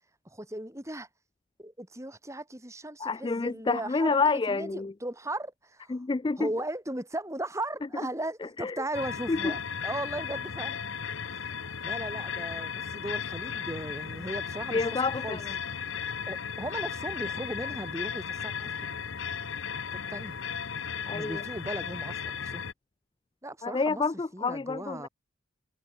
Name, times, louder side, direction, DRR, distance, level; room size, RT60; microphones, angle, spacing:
voice 1, 0.2-1.1 1.6-6.0 6.4-10.8 11.4-11.5 11.8-15.4 16.3-18.9 20.1-20.4 21.1-22.6 23.4-24.0 24.3-25.1, right 1 dB, 15° right, 4.5 m, -37 dB
voice 2, 3.0-4.9 5.9-6.5 8.4-8.8 9.3-9.5 14.7-15.5 21.1-21.4 23.6-25.1, left 4 dB, 20° left, 0.3 m, -28 dB
sound 1, 8.9-22.7, left 7 dB, 65° left, 1.0 m, -35 dB
head